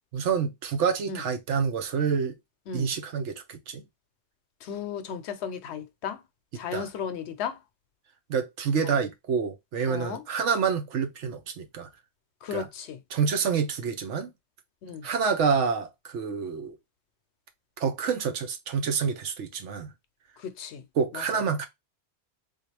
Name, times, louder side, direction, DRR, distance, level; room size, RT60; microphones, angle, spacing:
voice 1, 0.1-2.4 2.7-3.8 6.7-6.9 8.3-11.9 12.5-12.7 13.1-14.3 15.0-16.8 17.8-19.9 21.0-21.6, right 6 dB, 90° right, 1.1 m, -27 dB
voice 2, 4.6-6.2 6.5-7.6 8.8-9.0 9.9-10.2 12.4-13.0 14.8-15.1 20.4-20.9 21.1-21.2, left 7 dB, 75° left, 0.9 m, -35 dB
3.6 x 2.4 x 3.2 m
omnidirectional pair, 1.2 m